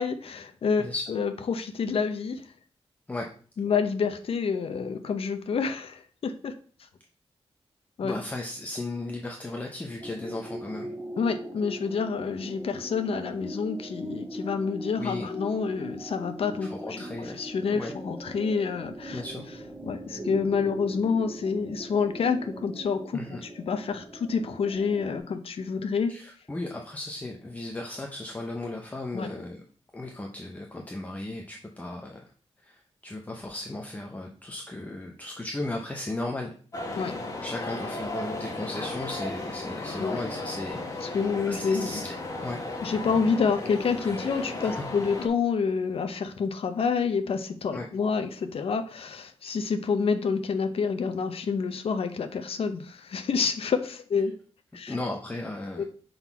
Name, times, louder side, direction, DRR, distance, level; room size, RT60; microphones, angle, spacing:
voice 1, 0.0-2.4 3.6-6.6 8.0-8.1 11.2-19.2 19.8-26.2 29.1-29.3 37.0-37.1 40.0-40.2 41.0-42.0 42.8-54.4 54.7-55.0 55.8-55.9, left 5 dB, 65° left, 8 dB, 0.6 m, -28 dB
voice 2, 8.0-10.9 15.0-15.3 16.6-17.4 17.7-17.9 19.1-19.4 23.1-23.4 26.1-29.6 29.9-32.2 32.6-36.5 37.4-41.2 41.5-42.1 42.4-42.6 44.6-44.9 47.7-47.9 54.9-55.8, left 2 dB, 15° left, 1 dB, 0.6 m, -36 dB
sound 1, 10.0-25.2, right 1 dB, 20° right, 1.4 m, -40 dB
sound 2, 36.7-45.3, left 2 dB, 30° left, 1.1 m, -35 dB
5.9 x 3.9 x 4.5 m, 0.43 s
wide cardioid pair, 175°, 11 cm